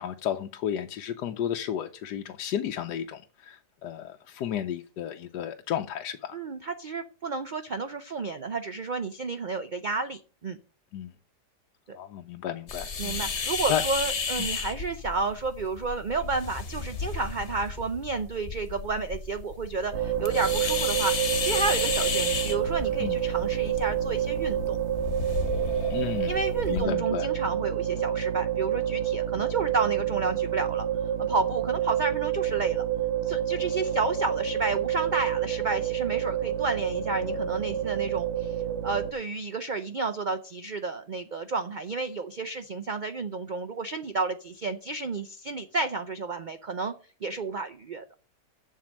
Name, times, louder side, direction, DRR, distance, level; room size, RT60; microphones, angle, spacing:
voice 1, 0.0-6.3 10.9-11.1 11.9-13.8 23.0-23.2 25.9-26.3 26.7-27.3, left 10 dB, 85° left, 5 dB, 1.3 m, -33 dB
voice 2, 6.3-10.6 11.9-12.0 13.0-24.8 26.3-30.9 31.2-32.9 33.2-38.6 38.8-46.9 47.2-48.0, right 4 dB, 80° right, 9 dB, 0.4 m, -31 dB
sound 1, 12.7-26.8, left 5 dB, 45° left, 1.4 m, -33 dB
sound 2, 19.9-39.1, right 10 dB, 50° right, 1.2 m, -28 dB
7.5 x 6.8 x 7.5 m, 0.39 s
omnidirectional pair, 1.7 m